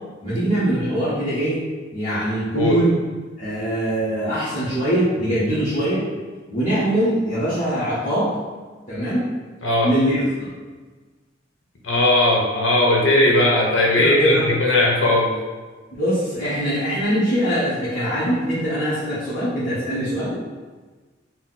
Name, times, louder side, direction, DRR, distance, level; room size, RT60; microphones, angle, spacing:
voice 1, 0.2-1.6 1.9-2.9 3.4-6.0 6.5-8.4 8.9-9.3 9.8-10.5 13.9-14.4 15.9-20.4, right 1 dB, 35° left, -14 dB, 1.3 m, -22 dB
voice 2, 9.6-9.9 11.8-15.3, left 1 dB, 85° left, -2 dB, 0.9 m, -18 dB
4.0 x 2.0 x 4.1 m, 1.3 s
head